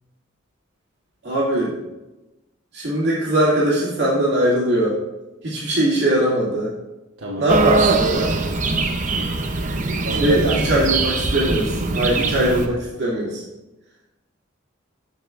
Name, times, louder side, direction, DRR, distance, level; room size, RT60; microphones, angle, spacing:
voice 1, 1.2-1.7 2.7-5.0 5.4-6.7 7.4-8.3 10.2-13.4, right 1 dB, 55° right, -7 dB, 2.4 m, -20 dB
sound 1, 7.5-12.7, right 3 dB, 40° right, 0.7 m, -22 dB
voice 2, 10.0-10.8, right 1 dB, 75° right, -4 dB, 1.2 m, -27 dB
15.0 x 5.4 x 2.5 m, 1.0 s
head